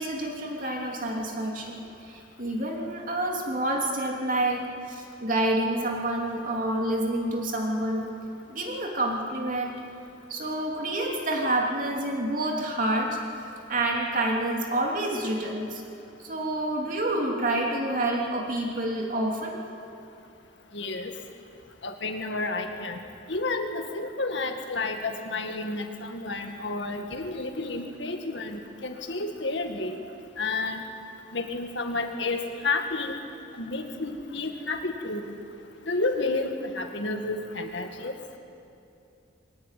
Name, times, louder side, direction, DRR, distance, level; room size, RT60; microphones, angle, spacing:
voice 1, 0.0-8.1 8.5-9.8 10.3-13.2 13.7-15.8 16.2-19.6, right 1 dB, 45° right, 0 dB, 3.0 m, -28 dB
voice 2, 20.7-21.1 21.8-23.0 23.3-30.0 30.4-30.8 31.3-33.2 33.6-35.3 35.9-38.2, left 3 dB, 65° left, 4 dB, 2.0 m, -31 dB
22.0 x 18.0 x 9.3 m, 2.7 s
head